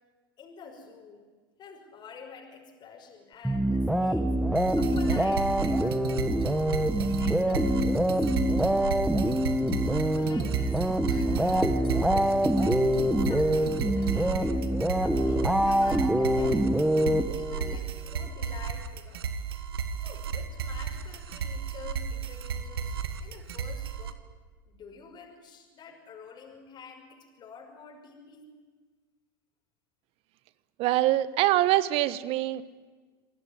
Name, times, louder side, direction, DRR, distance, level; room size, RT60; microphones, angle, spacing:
voice 1, 0.4-1.3 1.6-4.3 4.5-6.3 7.0-9.2 9.9-12.8 13.3-14.7 15.0-16.8 17.3-19.2 20.0-24.2 24.7-28.5, left 5 dB, 35° left, 1 dB, 5.8 m, -48 dB
sound 1, 3.4-17.8, equal, ahead, 1.5 m, -25 dB
sound 2, 4.6-24.1, right 6 dB, 85° right, 1.6 m, -34 dB
voice 2, 30.8-32.6, right 15 dB, 55° right, 15 dB, 1.3 m, -24 dB
27.0 x 17.5 x 9.8 m, 1.4 s
hypercardioid pair, 95°, 12 cm